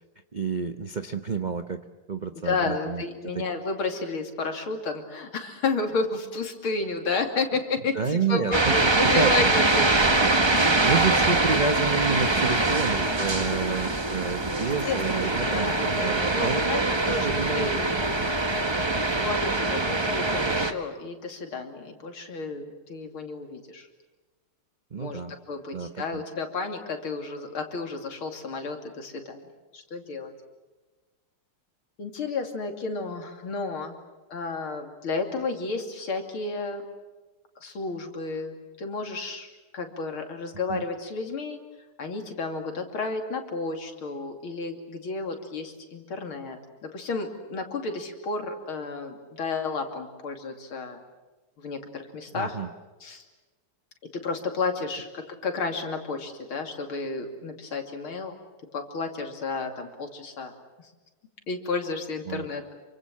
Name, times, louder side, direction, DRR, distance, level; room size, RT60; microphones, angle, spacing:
voice 1, 0.3-1.8 2.1-3.0 3.3-3.4 7.9-9.3 10.4-16.6 17.1-17.7 24.9-25.3 25.7-26.2 40.7-40.8 52.3-52.7 62.3-62.5, right 5 dB, 45° right, 8 dB, 0.5 m, -29 dB
voice 2, 2.4-10.2 10.5-10.7 14.6-15.8 16.3-16.8 17.1-17.9 18.2-18.3 19.2-23.9 24.9-25.2 25.5-29.5 29.7-30.3 32.0-34.0 34.3-36.8 37.6-41.6 42.0-51.0 51.6-52.6 53.0-53.2 54.1-58.4 58.7-60.5 60.8-60.9 61.5-62.7, left 3 dB, 75° left, 4 dB, 3.5 m, -32 dB
sound 1, 8.5-20.7, right 2 dB, 20° right, 0.8 m, -24 dB
27.5 x 25.0 x 7.6 m, 1.2 s
omnidirectional pair, 2.3 m